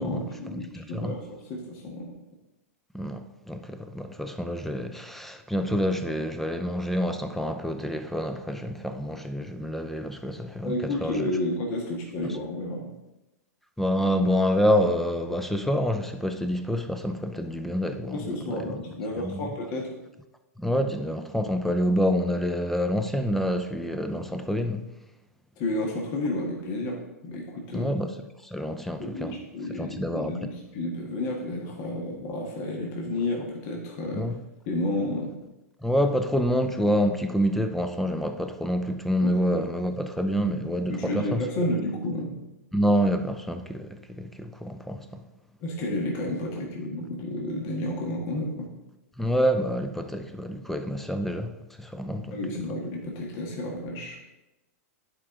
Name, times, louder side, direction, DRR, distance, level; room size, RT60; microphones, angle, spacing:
voice 1, 0.0-2.1 10.6-12.9 18.1-20.0 25.5-27.9 29.0-34.3 34.7-35.4 39.2-39.6 40.9-42.4 45.6-48.7 52.3-54.2, left 1 dB, 45° left, 1.6 m, -31 dB
voice 2, 0.5-1.1 2.9-11.3 13.8-18.8 19.2-19.5 20.6-24.9 27.7-28.1 28.4-29.4 29.8-30.5 34.1-34.4 35.8-41.5 42.7-45.2 49.2-52.4, equal, 5° left, 0.6 m, -27 dB
10.5 x 4.9 x 3.8 m
hypercardioid pair, 120°, 9 cm